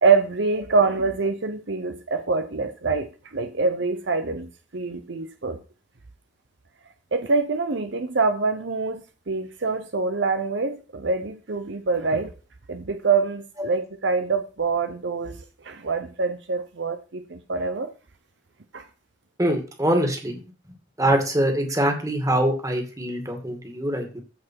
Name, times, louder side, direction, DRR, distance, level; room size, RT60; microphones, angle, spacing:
voice 1, 0.0-5.6 7.1-12.3 12.7-17.9 18.7-18.8, right 4 dB, 65° right, 0.8 m, -25 dB
voice 2, 19.4-20.4 21.0-24.2, right 1 dB, 15° right, 2.3 m, -23 dB
14.5 x 5.0 x 4.6 m
head